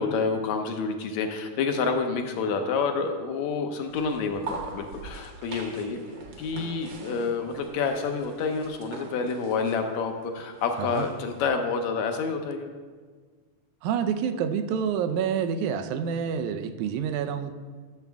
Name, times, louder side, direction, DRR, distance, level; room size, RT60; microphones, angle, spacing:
voice 1, 0.0-6.0 6.4-12.7, left 5 dB, 75° left, 5 dB, 2.0 m, -28 dB
sound 1, 3.8-11.5, right 3 dB, 55° right, 1.4 m, -43 dB
voice 2, 13.8-17.5, right 7 dB, 85° right, 9 dB, 2.1 m, -28 dB
12.5 x 7.1 x 3.5 m, 1.5 s
omnidirectional pair, 3.4 m